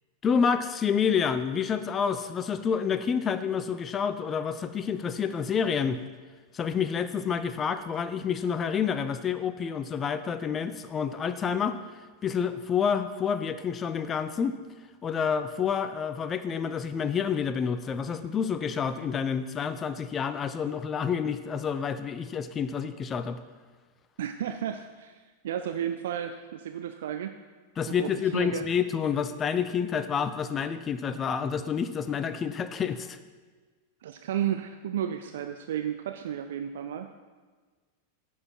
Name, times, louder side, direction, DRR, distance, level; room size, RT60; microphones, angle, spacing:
voice 1, 0.2-6.0 6.5-11.8 12.2-14.6 15.0-23.4 27.8-33.2, left 7 dB, 25° left, 11 dB, 0.5 m, -28 dB
voice 2, 24.2-27.3 27.9-28.6 34.0-37.1, right 10 dB, 60° right, 8 dB, 0.4 m, -33 dB
10.5 x 7.4 x 4.5 m, 1.4 s
figure-of-eight pair, 90°, 0 cm